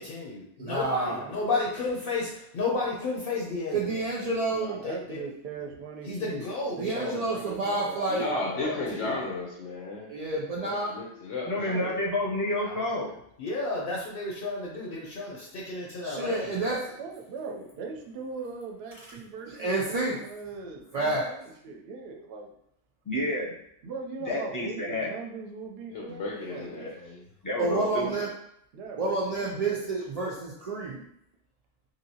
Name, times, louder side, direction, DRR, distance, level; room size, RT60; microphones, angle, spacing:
voice 1, 0.0-4.0 4.8-5.2 6.1-7.2 8.5-9.1 12.6-12.9 13.4-16.6 26.8-27.2, left 3 dB, 55° left, -3 dB, 0.7 m, -32 dB
voice 2, 0.6-1.2 3.7-4.8 6.8-8.3 10.1-10.9 16.0-16.9 19.5-20.2 20.9-21.3 27.6-28.3 29.0-31.0, right 2 dB, 80° right, -4 dB, 0.3 m, -29 dB
voice 3, 4.5-9.0 11.6-12.1 17.0-22.6 23.8-26.8 28.7-29.8, right 4 dB, 65° right, 1 dB, 0.8 m, -40 dB
voice 4, 8.1-10.2 10.6-11.7 25.9-26.9, left 2 dB, 80° left, -3 dB, 1.0 m, -34 dB
voice 5, 11.4-13.1 23.0-23.6 24.3-25.1 27.4-28.1, left 1 dB, 20° left, -5 dB, 0.6 m, -29 dB
3.2 x 2.7 x 2.7 m, 0.74 s
omnidirectional pair, 1.2 m